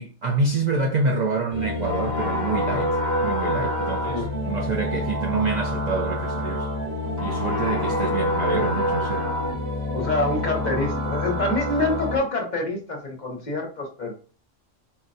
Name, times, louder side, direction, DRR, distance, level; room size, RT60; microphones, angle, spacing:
voice 1, 0.0-3.0 3.2-6.7 7.2-9.3, right 4 dB, 75° right, 0.4 m, -27 dB
sound 1, 1.5-12.2, left 1 dB, 15° right, 0.8 m, -26 dB
voice 2, 9.9-14.1, left 2 dB, 40° left, 0.8 m, -26 dB
3.9 x 2.1 x 2.6 m
omnidirectional pair, 1.3 m